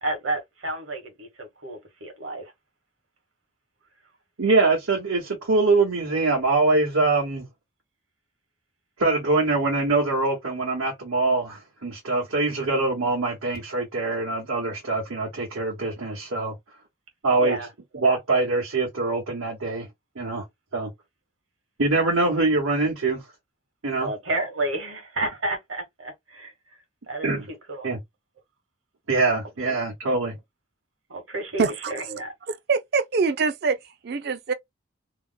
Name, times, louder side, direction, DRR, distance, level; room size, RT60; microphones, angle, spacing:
voice 1, 0.0-2.4 17.4-17.7 24.0-26.5 27.1-27.9 29.6-29.7 31.1-32.3, right 2 dB, 70° right, 1.3 m, -31 dB
voice 2, 4.4-7.4 9.0-16.5 17.2-17.6 17.9-19.9 20.2-20.4 20.7-20.9 21.8-23.2 23.8-24.1 27.2-27.4 27.8-28.0 29.1-30.3, right 3 dB, 90° right, 1.2 m, -23 dB
voice 3, 31.6-31.9 32.5-33.8 34.0-34.5, right 5 dB, 50° right, 0.4 m, -24 dB
2.9 x 2.1 x 3.7 m
head